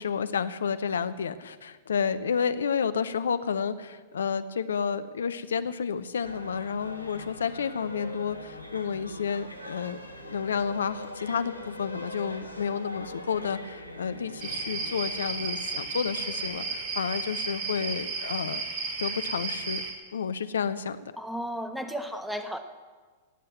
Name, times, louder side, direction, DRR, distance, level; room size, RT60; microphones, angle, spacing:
voice 1, 0.0-18.6 19.0-19.8 20.1-21.1, left 6 dB, 70° left, 13 dB, 0.7 m, -30 dB
sound 1, 6.2-17.7 18.0-18.1, left 1 dB, 90° left, 1.3 m, -43 dB
sound 2, 14.4-19.9, right 4 dB, 45° right, 2.4 m, -33 dB
voice 2, 21.2-22.6, equal, ahead, 8 dB, 1.2 m, -34 dB
17.0 x 7.7 x 7.9 m, 1.4 s
figure-of-eight pair, 95°, 0 cm